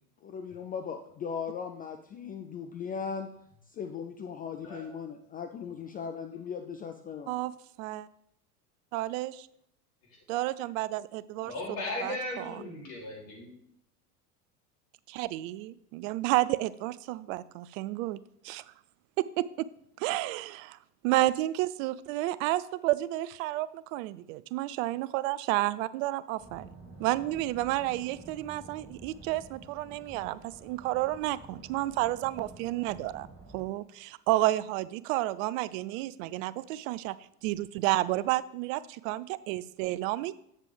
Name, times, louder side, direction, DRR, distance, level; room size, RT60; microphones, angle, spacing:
voice 1, 0.2-3.3 3.7-7.3, left 6 dB, 20° left, 6 dB, 0.3 m, -38 dB
voice 2, 8.9-9.5 10.3-11.5 12.0-12.6 15.1-18.6 19.2-19.7 20.0-20.8 21.0-26.7 27.0-33.3 33.5-37.2 37.4-40.3, right 16 dB, 60° right, 18 dB, 0.5 m, -31 dB
voice 3, 11.4-13.5, left 1 dB, 50° left, -2 dB, 3.1 m, -37 dB
sound 1, 26.4-33.7, right 3 dB, 30° right, 2.9 m, -50 dB
7.4 x 7.4 x 3.3 m, 0.73 s
hypercardioid pair, 80°, 46 cm